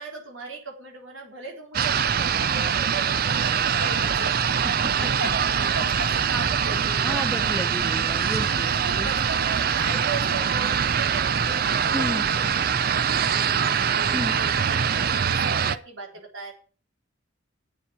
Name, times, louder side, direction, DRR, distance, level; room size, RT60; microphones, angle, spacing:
voice 1, 0.0-7.6 8.7-16.5, right 3 dB, 80° right, 1 dB, 3.7 m, -38 dB
sound 1, 1.7-15.8, right 7 dB, 50° right, 0.5 m, -23 dB
voice 2, 7.0-9.1 11.9-12.2 14.1-14.3, left 1 dB, 5° left, 9 dB, 0.7 m, -32 dB
8.7 x 7.3 x 8.7 m, 0.40 s
head